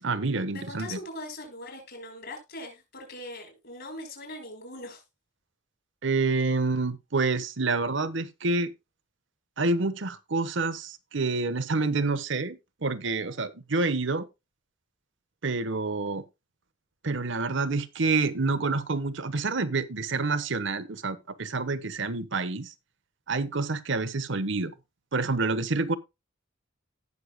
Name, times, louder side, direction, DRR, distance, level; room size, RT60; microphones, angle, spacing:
voice 1, 0.0-1.0 6.0-8.7 9.6-14.3 15.4-16.2 17.0-22.7 23.3-24.7 25.1-25.9, right 3 dB, 65° right, 1.0 m, -28 dB
voice 2, 0.5-5.0, left 1 dB, 50° left, 5.7 m, -41 dB
18.0 x 6.7 x 2.2 m
head